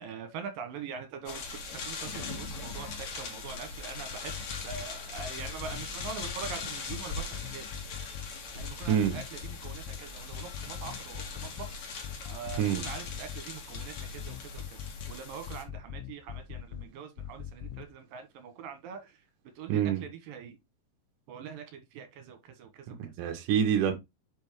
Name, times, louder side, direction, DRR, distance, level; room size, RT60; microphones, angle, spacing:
voice 1, 0.0-4.3 4.6-7.7 8.5-19.2 19.6-20.6 21.3-23.1, right 6 dB, 70° right, 2.3 m, -43 dB
sound 1, 1.3-15.6, left 4 dB, 55° left, 1.9 m, -40 dB
sound 2, 4.1-4.9 5.2-6.6 6.9-8.3 8.6-10.0 10.3-11.7 12.0-13.4 13.7-15.1 15.5-16.9 17.2-17.8, left 9 dB, 90° left, 3.1 m, -41 dB
voice 2, 19.7-20.1 23.0-23.9, right 8 dB, 85° right, 1.8 m, -26 dB
7.0 x 5.5 x 3.1 m
omnidirectional pair, 5.5 m